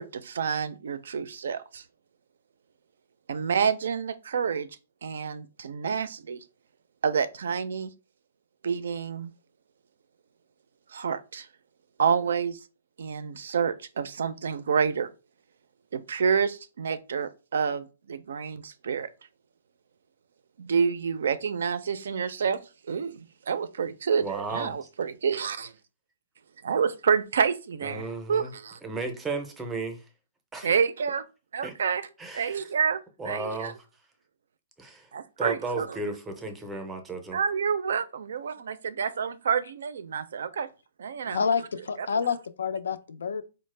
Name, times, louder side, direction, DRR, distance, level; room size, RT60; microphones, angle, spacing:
voice 1, 0.0-1.8 3.3-4.7 5.0-6.4 7.0-7.9 8.6-9.3 10.9-11.5 12.0-12.6 13.0-15.1 15.9-19.1 20.6-22.6 22.9-25.7 26.6-28.8 30.6-31.2 31.5-32.0 32.3-33.7 35.1-36.0 37.3-40.7 41.0-41.4 42.0-42.1, right 6 dB, 70° right, 0.4 m, -28 dB
voice 2, 24.2-24.8 27.8-28.5 28.8-30.0 30.5-30.7 31.6-31.7 32.2-32.6 33.2-33.8 34.8-35.1 35.4-37.4, right 3 dB, 10° right, 0.5 m, -34 dB
voice 3, 41.3-43.4, left 6 dB, 90° left, 0.4 m, -28 dB
4.1 x 2.0 x 3.2 m
hypercardioid pair, 165°, 0 cm